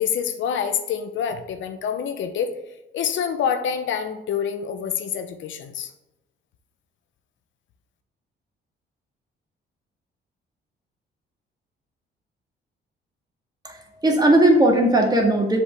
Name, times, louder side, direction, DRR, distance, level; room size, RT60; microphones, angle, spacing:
voice 1, 0.0-2.5 2.9-5.9, left 7 dB, 75° left, 8 dB, 0.8 m, -26 dB
voice 2, 13.6-15.6, right 1 dB, 20° right, 1 dB, 1.7 m, -18 dB
6.8 x 5.2 x 3.4 m, 0.98 s
cardioid pair, 90°, 20 cm